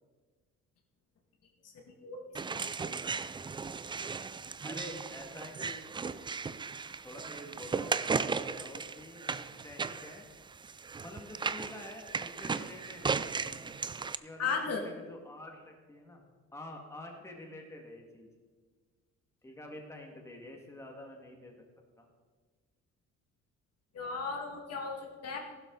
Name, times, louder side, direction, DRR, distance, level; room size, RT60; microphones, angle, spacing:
sound 1, 2.3-14.2, right 5 dB, 15° right, 0.3 m, -36 dB
voice 1, 2.5-3.2 14.4-14.8 23.9-25.4, left 5 dB, 55° left, 1 dB, 2.1 m, -36 dB
voice 2, 4.6-6.1 7.0-10.2 11.0-13.5 14.2-18.3 19.4-21.6 22.0-22.1, left 1 dB, 10° left, 1 dB, 1.9 m, -48 dB
15.0 x 12.0 x 3.9 m, 1.4 s
cardioid pair, 110°, 29 cm